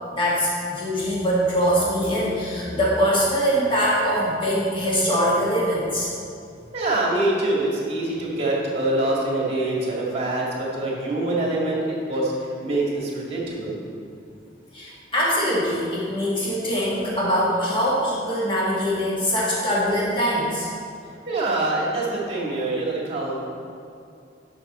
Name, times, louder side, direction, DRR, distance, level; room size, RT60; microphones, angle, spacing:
voice 1, 0.1-6.1 14.7-20.7, equal, 30° left, -7 dB, 2.0 m, -23 dB
voice 2, 6.7-13.8 21.3-23.3, right 2 dB, 35° right, -4 dB, 2.0 m, -25 dB
10.0 x 6.1 x 4.4 m, 2.5 s
head